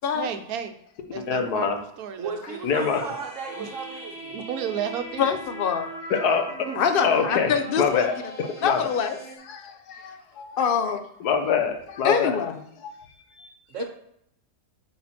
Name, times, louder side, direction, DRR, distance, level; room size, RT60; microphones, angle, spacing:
voice 1, 0.1-0.7 1.1-2.6 3.5-3.7 4.3-5.4 6.7-6.8, right 8 dB, 75° right, 1.2 m, -33 dB
voice 2, 1.1-1.8 2.6-3.0 6.1-6.5 7.0-8.1 8.6-8.8 9.5-10.6 11.2-12.4 12.8-12.9 13.3-13.5, left 6 dB, 90° left, 1.5 m, -25 dB
voice 3, 2.2-4.4 13.7-13.8, right 5 dB, 55° right, 1.3 m, -35 dB
sound 1, 2.8-9.4, right 1 dB, 25° left, 1.5 m, -40 dB
voice 4, 5.2-5.9 6.7-8.1 8.6-9.2 10.6-11.0 12.0-12.6, left 7 dB, 55° left, 0.6 m, -24 dB
8.5 x 4.2 x 4.2 m
omnidirectional pair, 1.6 m